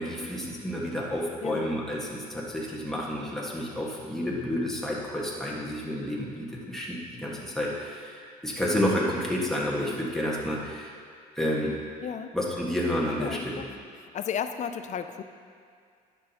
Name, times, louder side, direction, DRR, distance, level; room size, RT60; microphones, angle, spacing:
voice 1, 0.0-10.9 11.4-11.7 12.3-13.6, left 1 dB, ahead, -5 dB, 1.7 m, -30 dB
voice 2, 12.0-12.4 13.2-13.7 14.0-15.2, left 8 dB, 45° left, 9 dB, 0.5 m, -34 dB
11.0 x 6.1 x 3.0 m, 2.2 s
cardioid pair, 90°, 16 cm